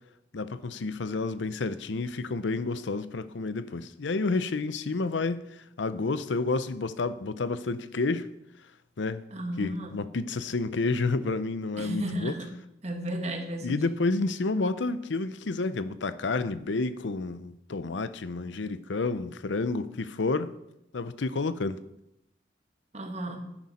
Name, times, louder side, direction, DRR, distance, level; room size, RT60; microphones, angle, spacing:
voice 1, 0.3-8.3 9.0-9.2 9.6-12.3 13.6-20.5 20.9-21.8, left 3 dB, 90° left, 0.6 m, -30 dB
voice 2, 9.3-10.1 11.8-12.5 12.8-14.1 22.9-23.4, right 1 dB, 35° right, 1.6 m, -34 dB
11.0 x 10.0 x 4.3 m
head